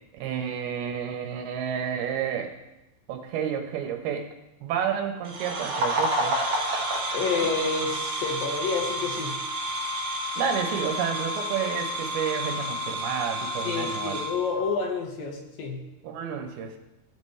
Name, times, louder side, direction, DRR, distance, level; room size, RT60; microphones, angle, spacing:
voice 1, 0.2-2.5 3.1-4.3 4.6-6.4 10.4-14.2 16.0-16.8, right 8 dB, 80° right, 4 dB, 2.9 m, -30 dB
sound 1, 5.2-14.3, right 2 dB, 55° right, 1.6 m, -31 dB
Wind instrument woodwind instrument, 5.8-14.8, left 5 dB, 45° left, 2.4 m, -35 dB
voice 2, 7.1-9.4 13.7-15.9, left 4 dB, 70° left, 1 dB, 2.9 m, -29 dB
15.5 x 7.0 x 3.3 m, 0.93 s
omnidirectional pair, 4.5 m